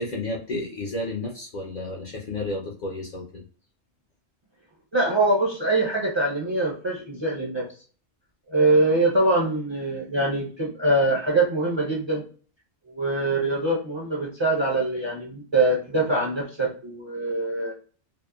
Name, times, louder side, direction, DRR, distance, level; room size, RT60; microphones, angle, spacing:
voice 1, 0.0-3.4, left 2 dB, 55° left, -1 dB, 0.5 m, -32 dB
voice 2, 4.9-7.7 8.5-12.2 12.9-17.7, right 2 dB, 35° right, -3 dB, 0.5 m, -23 dB
2.8 x 2.0 x 2.2 m, 0.40 s
omnidirectional pair, 1.2 m